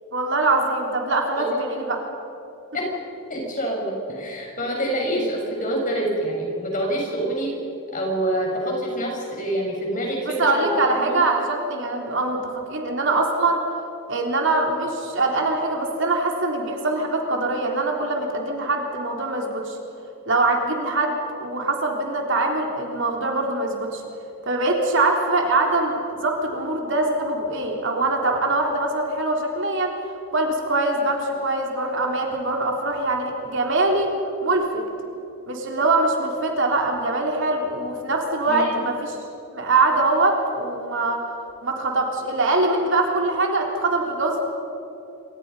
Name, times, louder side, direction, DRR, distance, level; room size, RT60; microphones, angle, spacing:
voice 1, 0.1-2.0 10.2-13.6 14.1-19.8 20.3-24.0 24.4-34.1 34.4-34.8 35.5-39.2 39.5-41.2 41.6-44.4, right 2 dB, 55° right, 1 dB, 3.5 m, -23 dB
voice 2, 3.3-7.5 7.9-10.8 11.0-11.2 38.5-38.8, right 1 dB, 35° left, -1 dB, 6.4 m, -26 dB
27.5 x 25.5 x 5.6 m, 2.9 s
head